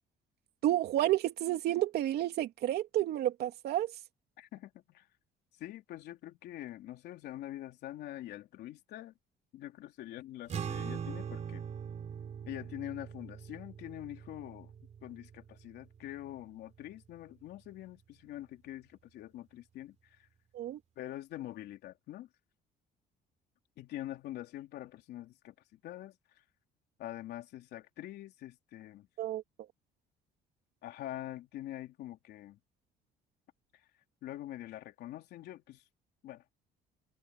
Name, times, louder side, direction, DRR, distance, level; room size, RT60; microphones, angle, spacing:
voice 1, 0.6-3.9 20.5-20.8 29.2-29.4, right 13 dB, 70° right, 2.8 m, -30 dB
voice 2, 4.4-5.1 5.6-9.1 9.5-11.6 12.5-14.7 15.0-20.3 21.0-22.3 23.8-26.2 27.0-29.1 30.8-32.6 34.2-35.9 36.2-36.4, left 14 dB, 75° left, 3.5 m, -45 dB
sound 1, 10.5-17.1, right 7 dB, 45° right, 3.4 m, -42 dB
cardioid pair, 110°, 17 cm